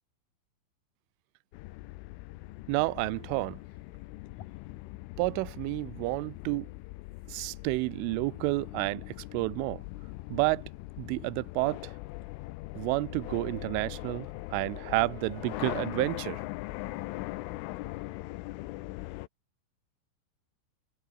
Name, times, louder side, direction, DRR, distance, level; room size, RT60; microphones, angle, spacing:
sound 1, 1.5-19.3, left 19 dB, 85° left, 3.4 m, -41 dB
voice 1, 2.7-3.6 5.2-6.7 7.3-9.8 10.3-10.6 11.0-11.9 12.8-16.4, right 23 dB, 90° right, 3.2 m, -30 dB
sound 2, 4.2-4.9 8.9-9.6 12.1-12.3 13.3-13.4 14.2-14.7, left 11 dB, 60° left, 2.5 m, -54 dB
omnidirectional pair, 5.6 m